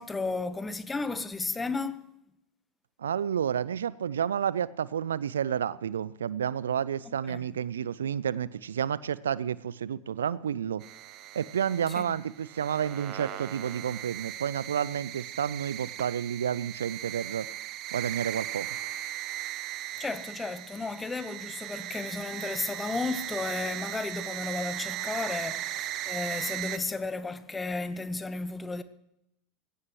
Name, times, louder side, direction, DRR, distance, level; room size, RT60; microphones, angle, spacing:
voice 1, 0.0-2.1 7.0-7.5 11.9-12.1 20.0-28.8, left 3 dB, 15° left, 1.2 m, -34 dB
voice 2, 3.0-10.8 11.3-17.5 17.9-18.7, right 8 dB, 75° right, 0.5 m, -30 dB
sound 1, 10.8-26.8, right 13 dB, 45° right, 0.9 m, -38 dB
21.0 x 17.0 x 3.2 m
figure-of-eight pair, 80°, 0 cm